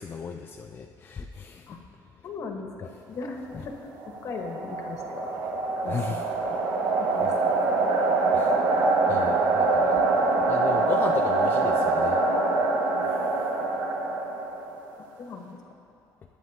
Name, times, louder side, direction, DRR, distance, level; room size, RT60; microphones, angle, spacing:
voice 1, 0.0-1.7 5.9-6.3 8.3-12.2 13.0-13.5, left 5 dB, 25° left, 3 dB, 0.4 m, -36 dB
voice 2, 2.2-3.4 3.6-3.8 4.0-5.3 5.8-6.2 7.0-7.5 15.2-15.6, left 4 dB, 45° left, 3 dB, 1.3 m, -38 dB
sound 1, 4.0-14.9, right 3 dB, 60° right, 1.5 m, -24 dB
20.0 x 9.2 x 2.8 m, 2.7 s
cardioid pair, 140°, 7 cm